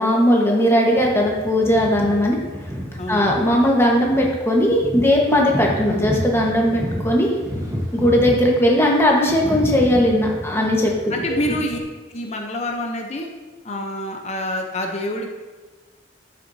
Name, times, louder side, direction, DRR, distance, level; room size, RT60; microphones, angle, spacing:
voice 1, 0.0-2.4 3.1-7.3 7.9-11.1, equal, 15° left, -1 dB, 1.3 m, -18 dB
windy-mountain-plains by dwightsabeast (improved), 0.9-11.8, equal, 20° right, 1.3 m, -31 dB
voice 2, 3.0-3.3 11.1-11.8 12.1-13.3 13.6-15.3, left 1 dB, 40° left, 2 dB, 0.8 m, -27 dB
12.0 x 6.2 x 2.8 m, 1.3 s
head